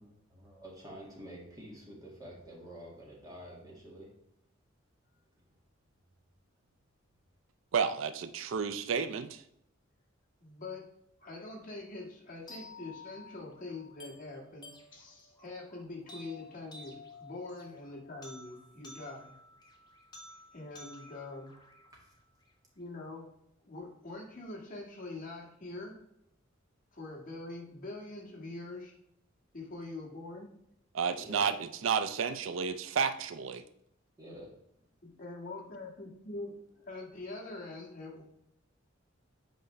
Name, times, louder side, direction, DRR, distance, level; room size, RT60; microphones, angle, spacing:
voice 1, 0.0-4.2 5.3-5.5 18.6-18.8 21.9-22.1 31.2-31.5 34.2-34.5 34.8-35.0, right 1 dB, 20° right, -3 dB, 1.9 m, -49 dB
voice 2, 7.7-9.4 30.9-31.5 31.8-33.6, right 6 dB, 75° right, 11 dB, 0.4 m, -31 dB
voice 3, 10.4-10.9 11.2-19.3 20.5-21.5 22.8-23.3 23.6-26.0 26.9-28.9 29.5-30.5 35.0-38.2, left 2 dB, 45° left, -2 dB, 1.8 m, -44 dB
sound 1, 12.5-22.5, left 2 dB, 20° left, 1.2 m, -53 dB
8.0 x 4.9 x 3.3 m, 0.76 s
head